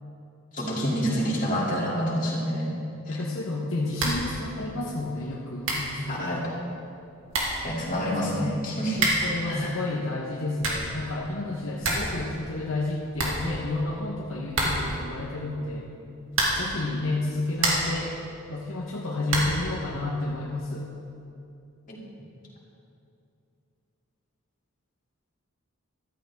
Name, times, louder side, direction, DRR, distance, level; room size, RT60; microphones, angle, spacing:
voice 1, 0.5-2.7 3.1-3.2 6.1-6.5 7.6-9.0 9.4-9.8 21.9-22.0, equal, 35° left, -5 dB, 2.7 m, -28 dB
voice 2, 3.1-6.4 7.9-8.6 9.0-15.9 16.5-18.1 18.5-20.9, left 2 dB, 70° left, -2 dB, 1.1 m, -31 dB
sound 1, 3.9-4.3 4.6-4.7 5.3-5.4 5.6-6.0 6.9-7.0 7.3-7.7 8.9-9.4 10.3-11.0 11.3-11.4 11.6-12.2 12.4-12.5 12.8-12.9 13.1-13.9 14.5-15.0 16.3-16.8 17.3-18.0 19.3-19.7, right 2 dB, 65° right, 2.4 m, -27 dB
15.0 x 13.0 x 3.6 m, 2.7 s
head